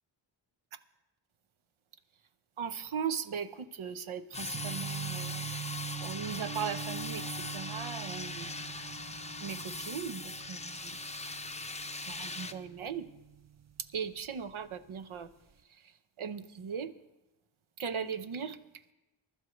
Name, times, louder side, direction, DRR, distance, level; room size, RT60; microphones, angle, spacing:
voice 1, 2.6-5.5 6.0-8.5 9.4-11.0 12.1-13.1 13.9-15.3 15.7-16.9 17.8-18.6, right 7 dB, 80° right, 11 dB, 0.9 m, -38 dB
sound 1, 4.3-12.5, left 3 dB, 15° left, 0.6 m, -40 dB
sound 2, 4.4-14.4 14.7-15.5, right 9 dB, 35° right, 0.5 m, -44 dB
23.5 x 12.0 x 3.1 m, 0.98 s
wide cardioid pair, 65°, 48 cm